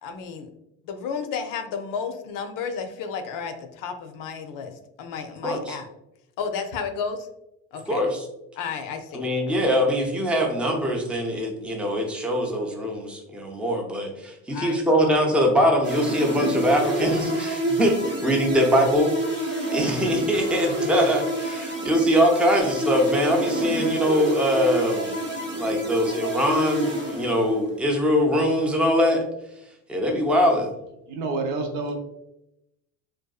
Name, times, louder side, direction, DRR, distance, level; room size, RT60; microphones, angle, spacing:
voice 1, 0.0-0.5 0.8-5.9 6.4-7.3 7.7-8.0 8.6-9.3 14.5-14.8, left 6 dB, 55° left, 7 dB, 0.5 m, -32 dB
voice 2, 5.4-5.8 7.9-8.3 9.1-19.2 19.7-25.2 25.5-29.2 29.9-30.7, equal, 5° right, 1 dB, 0.3 m, -22 dB
sound 1, 15.8-27.7, right 1 dB, 25° right, 0.7 m, -28 dB
voice 3, 31.1-31.9, right 3 dB, 75° right, 4 dB, 0.7 m, -28 dB
2.6 x 2.3 x 2.3 m, 0.87 s
supercardioid pair, 85°, 40 cm